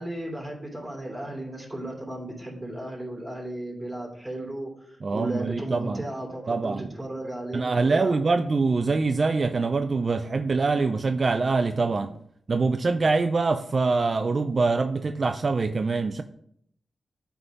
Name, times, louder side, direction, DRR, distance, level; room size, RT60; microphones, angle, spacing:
voice 1, 0.0-8.2, right 1 dB, 10° right, -1 dB, 3.1 m, -35 dB
voice 2, 5.0-6.0 6.5-6.9 7.5-12.1 12.5-16.2, right 3 dB, 45° right, 9 dB, 0.4 m, -24 dB
8.2 x 3.5 x 5.1 m, 0.70 s
cardioid pair, 60°, 0 cm